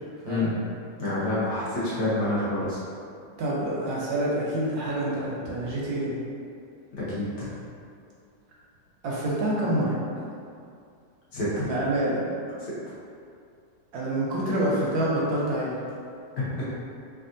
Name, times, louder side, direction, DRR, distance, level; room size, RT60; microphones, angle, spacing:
voice 1, 1.0-2.8 6.9-7.5 11.3-11.6 16.4-16.7, left 2 dB, 60° left, -10 dB, 1.3 m, -27 dB
voice 2, 3.4-6.2 9.0-10.0 11.6-12.3 13.9-15.8 16.6-16.7, right 1 dB, 70° right, -5 dB, 1.0 m, -27 dB
3.4 x 2.3 x 2.5 m, 2.4 s
omnidirectional pair, 1.9 m